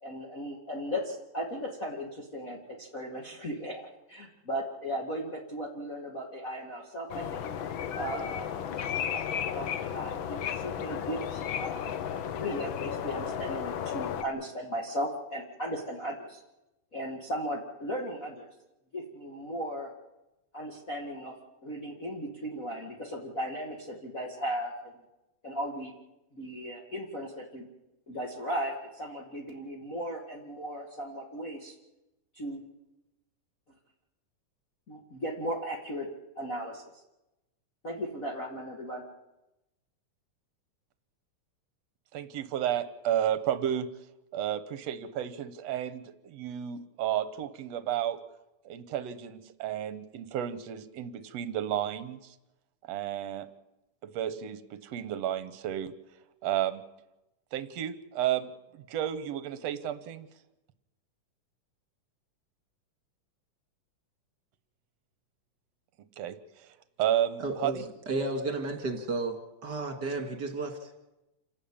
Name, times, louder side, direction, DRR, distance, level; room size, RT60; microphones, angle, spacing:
voice 1, 0.0-7.4 7.9-8.5 9.1-11.8 12.4-16.4 16.9-18.5 18.9-19.9 20.5-21.3 21.6-24.9 25.4-25.9 26.3-27.7 28.1-31.7 32.3-32.7 34.9-36.1 36.4-36.8 37.8-39.0, equal, 30° left, -2 dB, 2.2 m, -36 dB
sound 1, 7.1-14.2, left 9 dB, 90° left, 1.1 m, -34 dB
voice 2, 42.1-43.9 44.3-48.2 48.7-52.2 52.9-53.5 54.0-55.9 56.4-56.8 57.5-60.3 66.2-66.4 67.0-67.8, right 10 dB, 65° right, 12 dB, 2.0 m, -32 dB
voice 3, 67.4-69.4 69.6-71.0, right 2 dB, 35° right, 4 dB, 2.5 m, -33 dB
28.0 x 11.5 x 8.8 m, 0.97 s
omnidirectional pair, 3.6 m